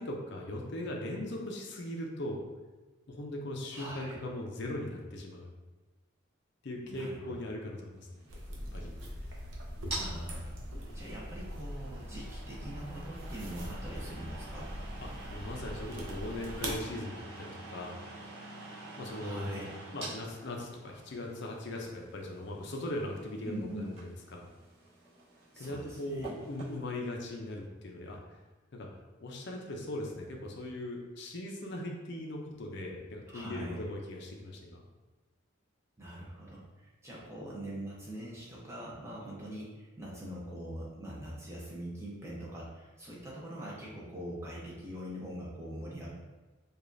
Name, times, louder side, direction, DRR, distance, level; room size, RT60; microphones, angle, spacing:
voice 1, 0.0-2.4 3.1-5.5 6.6-8.1 8.7-8.9 9.2-9.3 15.0-18.0 19.0-19.6 19.9-24.5 25.6-28.2 28.7-28.9 29.2-34.8, left 1 dB, 55° left, 0 dB, 0.5 m, -39 dB
voice 2, 3.7-4.2 6.9-7.5 9.9-10.6 10.9-14.7 19.2-19.7 23.4-23.9 25.5-26.3 33.3-33.8 36.0-46.1, equal, 15° right, -5 dB, 0.7 m, -43 dB
sound 1, 8.1-26.8, right 2 dB, 30° right, 1.3 m, -47 dB
sound 2, 8.3-16.8, equal, 65° right, 0.7 m, -42 dB
4.8 x 2.4 x 2.6 m, 1.2 s
head